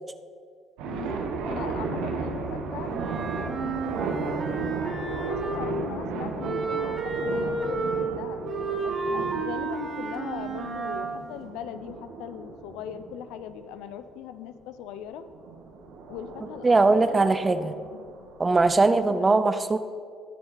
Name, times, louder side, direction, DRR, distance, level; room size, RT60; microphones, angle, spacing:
voice 1, 0.8-2.9 3.3-5.0 5.3-8.4 8.8-15.3 16.1-18.3 18.9-19.4, left 9 dB, 75° left, 11 dB, 0.7 m, -40 dB
sound 1, 0.8-13.7 15.2-18.8, right 4 dB, 75° right, 1.4 m, -35 dB
Wind instrument woodwind instrument, 2.9-5.8 6.4-11.2, right 4 dB, 50° right, 2.5 m, -31 dB
voice 2, 16.6-17.7 18.4-19.8, right 3 dB, 25° right, 11 dB, 0.7 m, -20 dB
19.0 x 6.8 x 4.2 m, 2.2 s
hypercardioid pair, 55°, 0 cm